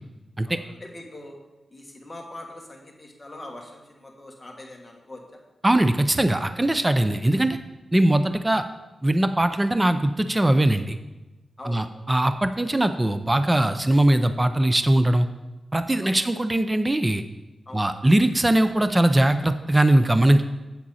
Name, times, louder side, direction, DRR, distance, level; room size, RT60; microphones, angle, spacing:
voice 1, 0.4-1.4 1.7-5.4 11.6-11.9 16.0-16.3 17.7-17.9, left 1 dB, 20° left, 0 dB, 1.4 m, -42 dB
voice 2, 5.6-7.6 7.9-8.6 9.0-11.0 11.6-15.3 15.7-17.2 17.7-20.4, right 1 dB, 15° right, 10 dB, 0.4 m, -20 dB
8.6 x 7.4 x 4.1 m, 1.1 s
wide cardioid pair, 125°, 0 cm